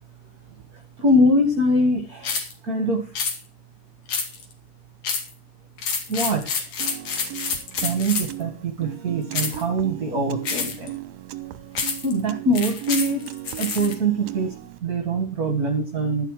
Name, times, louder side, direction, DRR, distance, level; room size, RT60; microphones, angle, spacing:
voice 1, 1.0-3.1 6.1-6.7 7.8-10.9 12.0-13.3 13.6-14.5 14.8-16.2, right 1 dB, 35° right, 4 dB, 1.8 m, -23 dB
sound 1, 2.2-2.5 3.2-3.4 4.1-4.5 5.0-5.3 5.8-8.4 9.3-9.6 10.5-10.9 11.8-12.1 12.6-13.9, left 5 dB, 70° left, 3.6 m, -28 dB
Piano, 6.8-14.8, right 15 dB, 70° right, 1.9 m, -38 dB
11.5 x 11.5 x 4.9 m, 0.33 s
omnidirectional pair, 3.5 m